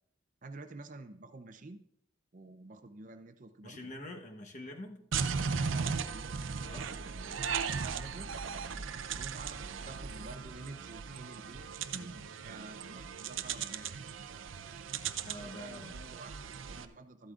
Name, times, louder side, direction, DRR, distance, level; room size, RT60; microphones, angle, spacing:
voice 1, 0.4-1.8 2.3-3.9 5.7-6.5 6.9-8.3 9.1-11.7 11.9-14.0 15.1-17.3, right 2 dB, 40° right, 9 dB, 0.6 m, -49 dB
voice 2, 3.6-5.0 6.6-7.0 15.2-16.0, left 1 dB, 40° left, 3 dB, 1.1 m, -46 dB
sound 1, 5.1-16.9, right 6 dB, 80° right, 0.6 m, -37 dB
14.0 x 11.5 x 2.5 m, 0.67 s
head